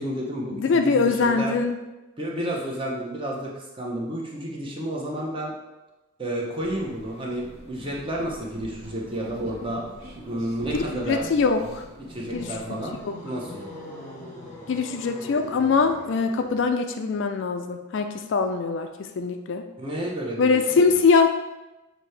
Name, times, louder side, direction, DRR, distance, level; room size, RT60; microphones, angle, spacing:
voice 1, 0.0-1.5 2.2-5.5 6.2-9.8 10.3-11.3 12.1-13.0 13.2-13.7 19.8-20.8, right 1 dB, 25° right, -2 dB, 0.7 m, -31 dB
voice 2, 0.5-1.8 10.7-11.8 12.3-13.1 14.7-19.6 20.4-21.3, left 4 dB, 55° left, 6 dB, 0.3 m, -23 dB
sound 1, 6.6-13.1, right 1 dB, 70° right, 1.2 m, -42 dB
sound 2, 12.0-16.7, left 1 dB, 10° left, 1.0 m, -42 dB
6.0 x 2.7 x 3.2 m, 1.1 s
head